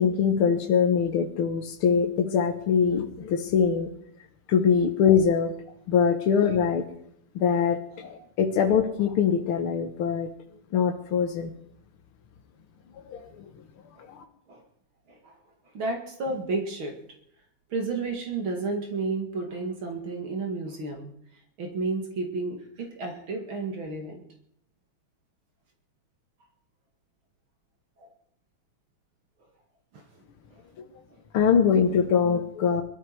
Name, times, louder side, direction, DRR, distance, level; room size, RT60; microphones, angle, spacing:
voice 1, 0.0-3.9 4.5-5.5 5.9-6.8 7.4-10.3 10.7-11.5 13.1-13.5 14.0-14.2 31.3-32.8, left 7 dB, 80° left, 4 dB, 2.1 m, -23 dB
voice 2, 15.7-17.0 17.7-21.1 21.6-24.2 28.0-28.1 29.9-30.0 30.5-30.6, right 3 dB, 70° right, 3 dB, 3.0 m, -32 dB
21.5 x 13.0 x 4.7 m, 0.70 s
omnidirectional pair, 2.4 m